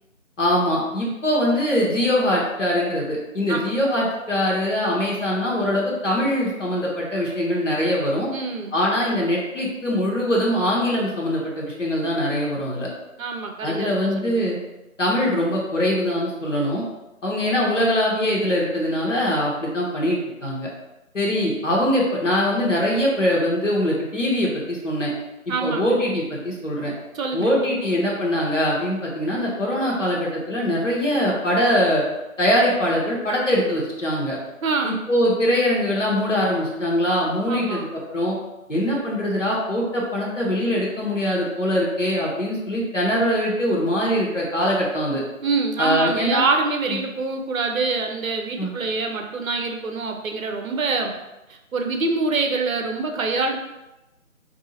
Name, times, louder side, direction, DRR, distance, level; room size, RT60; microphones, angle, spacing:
voice 1, 0.4-8.3 8.7-12.9 13.6-14.6 15.0-16.8 17.2-20.7 21.1-25.1 25.6-26.9 27.3-32.0 32.4-34.4 34.8-38.4 38.7-45.2 45.8-46.4 46.9-47.0 48.6-48.7, equal, 65° left, -4 dB, 0.9 m, -22 dB
voice 2, 8.3-8.7 13.2-14.4 25.5-26.0 27.1-27.5 34.6-35.0 37.5-37.9 45.4-51.2 51.7-53.6, right 4 dB, 80° right, 4 dB, 0.6 m, -25 dB
2.6 x 2.4 x 2.8 m, 0.97 s
figure-of-eight pair, 170°, 41 cm